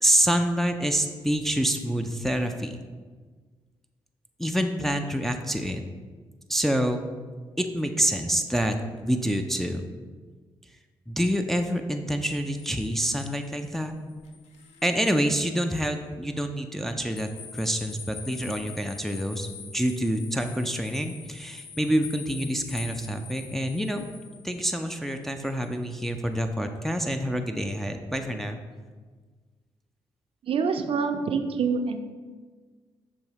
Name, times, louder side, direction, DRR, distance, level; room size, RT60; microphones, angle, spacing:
voice 1, 0.0-2.8 4.4-5.8 6.5-7.0 7.6-9.9 11.1-13.9 14.8-24.0 24.4-28.6, equal, 5° left, 5 dB, 0.4 m, -27 dB
sound 1, 12.3-15.4 15.9-16.0 17.1-26.1, left 6 dB, 85° left, 0.5 m, -46 dB
voice 2, 30.4-32.0, right 5 dB, 60° right, 8 dB, 0.4 m, -26 dB
6.4 x 2.7 x 3.0 m, 1.4 s
supercardioid pair, 50°, 11 cm